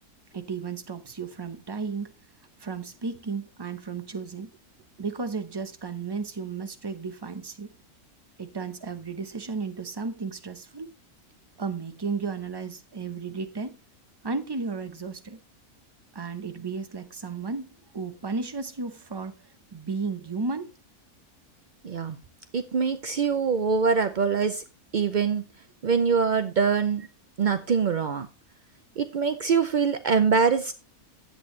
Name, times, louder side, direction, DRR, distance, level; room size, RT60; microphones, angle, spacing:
voice 1, 0.3-2.1 2.6-4.5 5.0-7.7 8.4-10.9 11.6-13.8 14.2-15.4 16.1-20.7, right 4 dB, 25° right, 0.6 m, -34 dB
voice 2, 21.8-22.2 22.5-24.6 24.9-25.4 25.8-27.0 27.4-28.3 29.0-30.7, right 5 dB, 70° right, 0.4 m, -24 dB
10.5 x 8.4 x 3.2 m
omnidirectional pair, 1.6 m